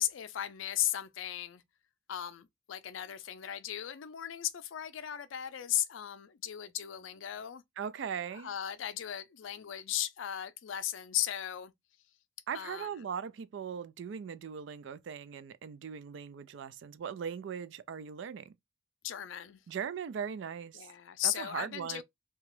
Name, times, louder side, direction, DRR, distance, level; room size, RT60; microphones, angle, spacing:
voice 1, 0.0-1.6 2.1-7.6 8.4-11.7 12.5-12.9 19.0-19.6 20.7-22.0, left 11 dB, 85° left, 0.4 m, -36 dB
voice 2, 7.8-8.5 12.5-18.5 19.7-20.9 21.2-22.0, right 7 dB, 65° right, 0.3 m, -39 dB
2.9 x 2.3 x 3.0 m
head